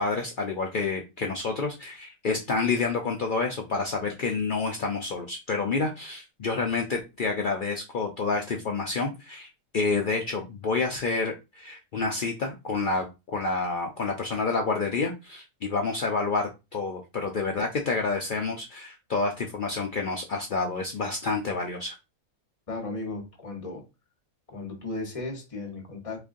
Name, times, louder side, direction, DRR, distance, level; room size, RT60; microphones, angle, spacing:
voice 1, 0.0-22.0, left 3 dB, 65° left, 0.5 m, -29 dB
voice 2, 22.7-23.9 24.5-26.2, left 2 dB, 30° left, 0.8 m, -35 dB
3.6 x 3.2 x 2.5 m
omnidirectional pair, 1.5 m